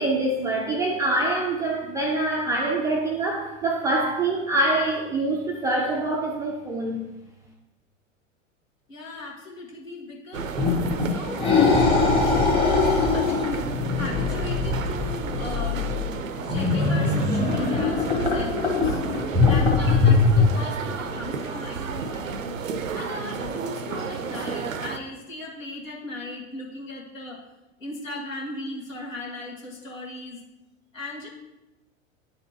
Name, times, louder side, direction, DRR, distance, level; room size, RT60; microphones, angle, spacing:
voice 1, 0.0-7.0, right 2 dB, 10° right, -2 dB, 0.3 m, -25 dB
voice 2, 8.9-10.5 11.0-12.0 12.7-13.6 13.9-15.8 16.4-19.0 19.4-22.4 22.9-27.4 27.8-30.4 30.9-31.3, left 2 dB, 75° left, -2 dB, 1.6 m, -37 dB
sound 1, 10.3-25.0, right 5 dB, 80° right, 0.5 m, -32 dB
sound 2, 10.6-20.5, left 4 dB, 15° left, 1.1 m, -22 dB
9.6 x 4.2 x 2.8 m, 0.98 s
figure-of-eight pair, 90°, 39 cm